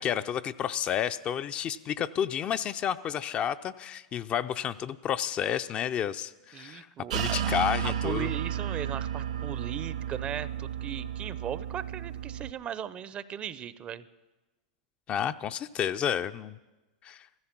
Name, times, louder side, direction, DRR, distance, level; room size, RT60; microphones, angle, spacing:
voice 1, 0.0-6.9 7.1-8.3 15.1-16.6 17.0-17.3, left 9 dB, 30° left, 11 dB, 0.5 m, -31 dB
voice 2, 6.5-7.5 7.8-14.0, right 9 dB, 30° right, 17 dB, 0.6 m, -38 dB
sound 1, 7.1-12.5, right 9 dB, 80° right, 1.3 m, -33 dB
15.0 x 14.0 x 6.0 m, 1.1 s
hypercardioid pair, 110°, 4 cm